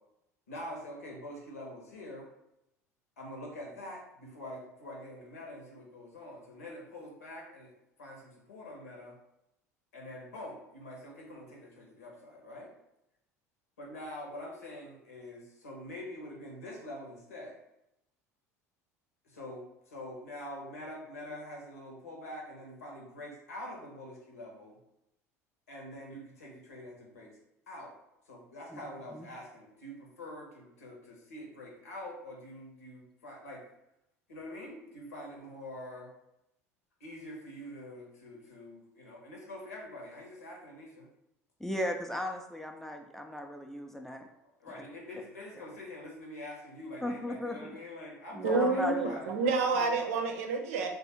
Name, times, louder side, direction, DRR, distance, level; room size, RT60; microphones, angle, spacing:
voice 1, 0.5-2.3 3.2-7.7 8.0-9.2 9.9-12.7 13.8-17.6 19.2-24.8 25.7-27.4 27.7-27.9 28.3-33.6 34.3-36.1 37.0-41.1 44.6-49.3, left 1 dB, 75° left, -1 dB, 1.1 m, -45 dB
voice 2, 41.6-44.2 47.0-47.7 48.3-49.2 49.8-50.0, left 1 dB, 5° left, 3 dB, 0.5 m, -36 dB
voice 3, 48.4-50.9, right 4 dB, 65° right, 4 dB, 0.6 m, -29 dB
3.4 x 2.5 x 4.3 m, 0.86 s
figure-of-eight pair, 65°, 8 cm